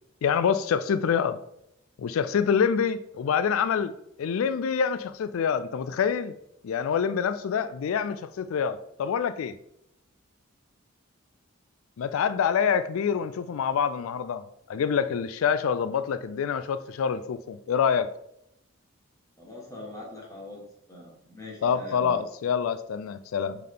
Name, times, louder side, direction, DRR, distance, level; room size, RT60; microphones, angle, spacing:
voice 1, 0.2-1.4 2.0-3.9 4.2-6.3 6.6-9.6 12.0-14.4 14.7-18.1 21.6-23.6, left 7 dB, 85° left, 13 dB, 0.4 m, -26 dB
voice 2, 19.4-20.6 20.9-22.2, left 2 dB, 15° left, -3 dB, 1.9 m, -42 dB
7.5 x 3.7 x 3.8 m, 0.77 s
head